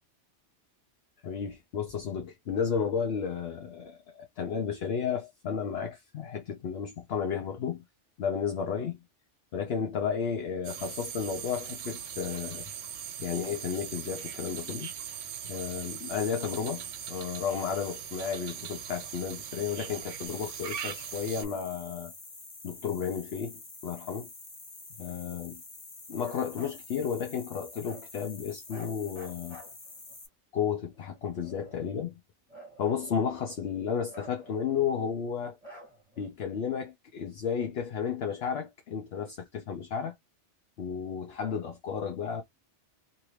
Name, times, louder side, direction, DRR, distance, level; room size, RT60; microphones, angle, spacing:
voice 1, 1.2-7.8 8.2-9.0 9.5-12.7 13.2-14.9 15.4-22.1 22.6-24.3 25.0-25.6 26.1-29.6 30.5-32.2 32.8-35.6 36.2-40.1 40.8-42.4, left 7 dB, 60° left, 0.9 m, -33 dB
sound 1, 10.6-21.4, right 9 dB, 90° right, 1.0 m, -40 dB
sound 2, 20.3-30.3, left 3 dB, 25° left, 0.6 m, -48 dB
Bark, 26.2-26.8 27.8-28.1 28.7-30.1 30.9-32.0 32.5-33.6 34.1-35.1 35.6-36.3, equal, 10° right, 1.8 m, -50 dB
2.8 x 2.6 x 3.1 m
omnidirectional pair, 1.2 m